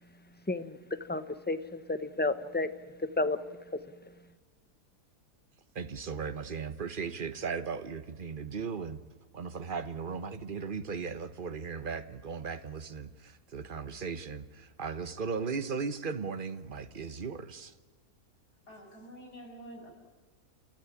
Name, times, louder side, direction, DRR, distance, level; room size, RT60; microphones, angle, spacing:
voice 1, 0.5-0.8 1.1-2.7 3.2-3.4, left 2 dB, 10° left, 11 dB, 0.7 m, -31 dB
voice 2, 5.7-9.0 9.3-17.7, right 5 dB, 35° right, 11 dB, 1.2 m, -37 dB
voice 3, 18.7-19.9, equal, 75° left, 0 dB, 7.3 m, -48 dB
29.5 x 13.5 x 9.8 m, 1.3 s
omnidirectional pair, 1.7 m